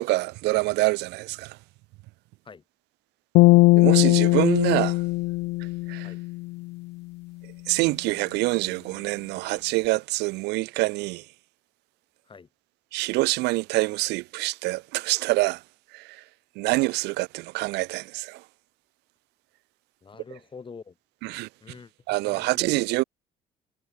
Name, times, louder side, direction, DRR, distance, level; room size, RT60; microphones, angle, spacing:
voice 1, 0.0-1.6 3.8-5.0 5.9-6.1 7.7-11.2 12.9-15.6 15.9-16.2 16.6-18.4 21.2-21.5 22.1-23.0, right 22 dB, 90° right, 0.6 m, -26 dB
sound 1, 3.4-6.7, left 22 dB, 85° left, 0.4 m, -19 dB
voice 2, 20.0-20.9 21.6-22.8, left 5 dB, 30° left, 5.8 m, -46 dB
cardioid pair, 110°, 17 cm